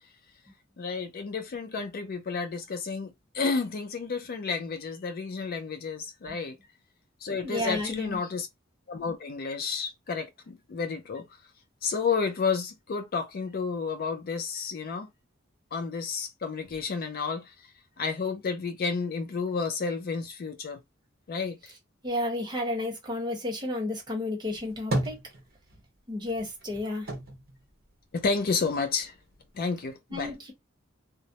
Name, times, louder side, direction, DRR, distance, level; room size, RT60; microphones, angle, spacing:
voice 1, 0.8-6.6 7.2-8.5 8.9-11.3 11.8-15.1 15.7-17.7 18.0-20.8 21.3-21.7 28.1-29.1 29.5-30.3, left 5 dB, 50° left, 0.4 m, -31 dB
voice 2, 7.4-8.2 22.0-25.2 26.1-27.1 30.1-30.5, left 1 dB, 20° right, 0.9 m, -32 dB
sound 1, 24.4-25.9 26.3-28.6 29.0-29.9, right 1 dB, 50° right, 0.9 m, -35 dB
2.2 x 2.0 x 2.7 m
head